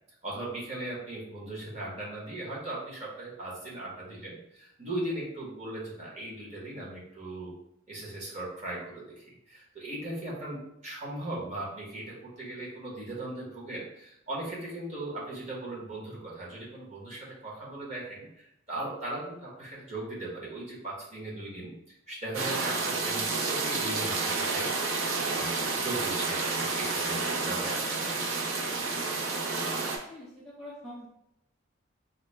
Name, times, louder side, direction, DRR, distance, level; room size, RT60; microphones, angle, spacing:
voice 1, 0.2-7.5 7.9-25.0 25.3-25.5 25.8-28.1, right 1 dB, 35° right, -5 dB, 1.1 m, -38 dB
sound 1, 22.3-30.0, right 3 dB, 70° right, 0.6 m, -30 dB
voice 2, 30.1-31.1, left 1 dB, ahead, -7 dB, 0.5 m, -44 dB
3.9 x 2.2 x 3.2 m, 0.78 s
head